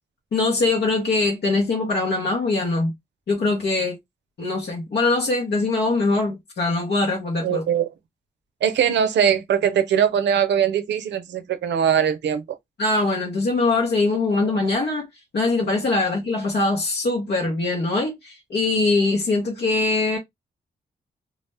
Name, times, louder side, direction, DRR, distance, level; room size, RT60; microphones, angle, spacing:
voice 1, 0.3-2.9 3.3-4.0 4.4-7.6 12.8-15.1 15.3-20.2, left 3 dB, 70° left, 0.9 m, -22 dB
voice 2, 7.4-7.9 8.6-12.4, right 8 dB, 85° right, 0.5 m, -21 dB
2.4 x 2.0 x 3.1 m
cardioid pair, 50°, 18 cm